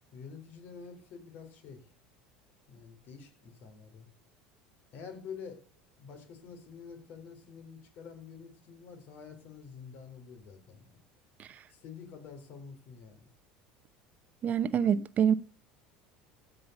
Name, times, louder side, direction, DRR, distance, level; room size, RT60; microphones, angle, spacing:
voice 1, 0.1-1.9 2.7-4.1 4.9-5.6 6.0-11.0 11.7-13.3, left 6 dB, 55° left, 3.7 m, -48 dB
voice 2, 14.4-15.3, right 8 dB, 40° right, 0.7 m, -26 dB
15.5 x 5.6 x 6.8 m
hypercardioid pair, 80°, 4 cm